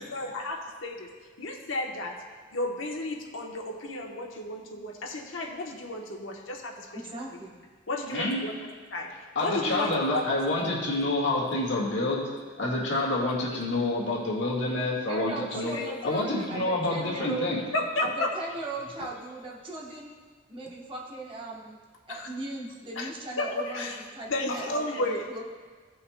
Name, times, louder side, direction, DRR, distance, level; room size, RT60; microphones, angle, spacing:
voice 1, 0.1-1.1 1.4-2.2 2.5-6.9 7.9-8.5 8.9-9.1 9.4-10.3 15.5-15.9 17.7-18.3 22.1-22.3 23.0-23.1 23.4-24.0 24.3-25.4, left 2 dB, 85° left, 1 dB, 1.0 m, -32 dB
voice 2, 6.9-7.6 15.1-17.5 18.0-20.1 20.5-21.8 22.1-25.4, right 2 dB, 25° right, -3 dB, 1.0 m, -38 dB
voice 3, 9.4-12.2 12.6-15.7 16.0-17.6, left 2 dB, 70° left, -4 dB, 1.8 m, -28 dB
16.5 x 5.6 x 2.2 m, 1.5 s
head